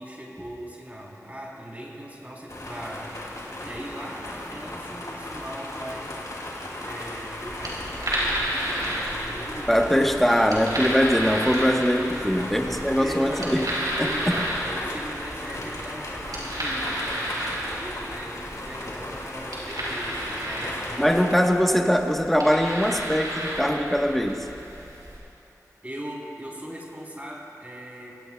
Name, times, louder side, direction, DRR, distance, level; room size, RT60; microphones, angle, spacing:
voice 1, 0.0-6.2 6.8-10.6 11.9-12.6 13.0-13.6 14.0-17.2 17.7-21.1 25.8-28.2, right 1 dB, 25° right, -4 dB, 3.5 m, -39 dB
sound 1, 2.5-21.3, left 1 dB, 65° left, 2.7 m, -36 dB
sound 2, 7.4-25.2, equal, 85° right, 4.0 m, -32 dB
voice 2, 9.7-13.7 14.0-14.1 21.0-24.4, equal, 5° left, 2 dB, 1.2 m, -22 dB
24.5 x 17.0 x 2.3 m, 2.8 s
wide cardioid pair, 50°, 6 cm